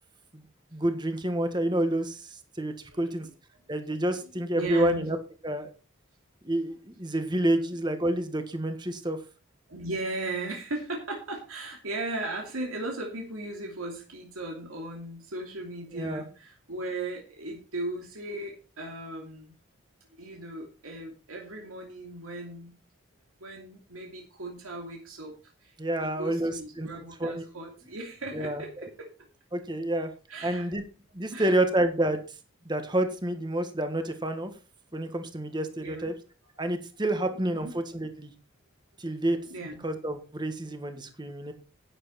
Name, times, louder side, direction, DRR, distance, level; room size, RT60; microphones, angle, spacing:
voice 1, 0.7-3.3 3.7-5.2 5.4-5.7 6.4-9.2 15.9-16.2 25.8-26.9 27.2-27.4 28.3-28.9 29.5-30.1 30.4-30.8 31.1-32.2 32.6-34.5 34.9-36.1 36.6-38.3 39.0-39.4 39.8-41.5, right 1 dB, 20° right, 8 dB, 1.6 m, -29 dB
voice 2, 4.2-5.1 9.7-19.6 20.2-22.8 23.4-25.7 26.0-29.3 30.3-30.7 31.3-31.5 35.8-36.1 37.5-37.7 39.5-39.9, right 2 dB, 90° right, 0 dB, 2.8 m, -37 dB
11.0 x 9.7 x 4.3 m, 0.33 s
head